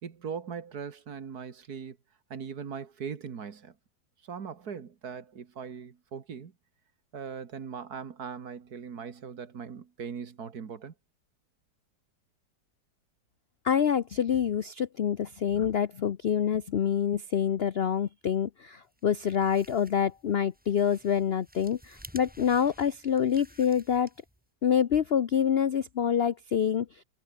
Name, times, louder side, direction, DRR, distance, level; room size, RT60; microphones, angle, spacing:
voice 1, 0.0-2.0 2.3-3.7 4.2-6.5 7.1-10.9, right 6 dB, 60° right, 2.1 m, -40 dB
voice 2, 13.6-24.1 24.6-26.9, left 8 dB, 65° left, 0.6 m, -26 dB
sound 1, 18.9-24.5, equal, 5° right, 3.3 m, -53 dB
omnidirectional pair, 1.9 m